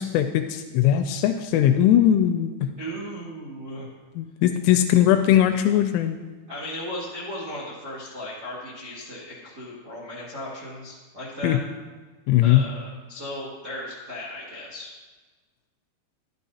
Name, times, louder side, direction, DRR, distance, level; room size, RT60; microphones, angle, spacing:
voice 1, 0.0-2.5 4.2-6.2 11.4-11.6 12.3-12.6, left 11 dB, 85° left, 6 dB, 2.9 m, -19 dB
voice 2, 2.8-3.9 6.5-11.6 12.4-14.9, equal, 65° right, -8 dB, 1.0 m, -36 dB
12.0 x 11.5 x 2.8 m, 1.3 s
omnidirectional pair, 5.9 m